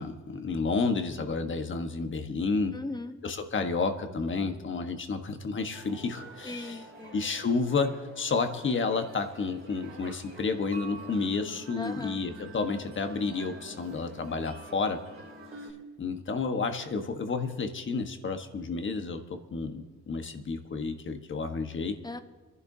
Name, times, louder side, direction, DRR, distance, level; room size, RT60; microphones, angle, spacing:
voice 1, 0.0-2.8 3.2-6.8 7.1-15.0 16.0-19.2 19.5-21.9, left 4 dB, 40° left, 6 dB, 1.3 m, -31 dB
voice 2, 2.7-3.2 6.4-7.3 11.8-12.2 22.0-22.2, left 2 dB, 15° left, 9 dB, 0.9 m, -38 dB
sound 1, 5.7-15.7, right 1 dB, 45° right, 2.3 m, -47 dB
28.5 x 11.0 x 2.8 m, 1.2 s
cardioid pair, 90°, 30 cm